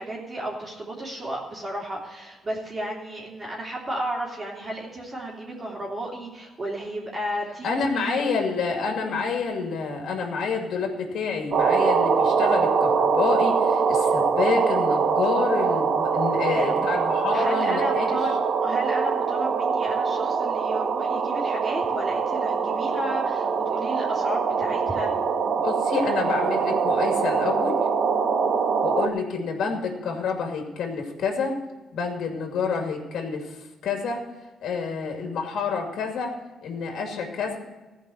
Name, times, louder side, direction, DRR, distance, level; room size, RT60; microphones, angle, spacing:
voice 1, 0.0-8.2 14.0-14.1 16.4-16.8 17.3-25.1, right 1 dB, 30° right, -3 dB, 3.3 m, -33 dB
voice 2, 7.6-18.2 25.6-27.8 28.8-31.6 31.9-33.6 33.8-34.3 34.6-36.3 36.6-37.6, left 5 dB, 70° left, 2 dB, 2.4 m, -28 dB
sound 1, 11.5-29.1, right 5 dB, 55° right, 1.1 m, -23 dB
15.0 x 5.4 x 9.2 m, 1.1 s
cardioid pair, 90°, 0 cm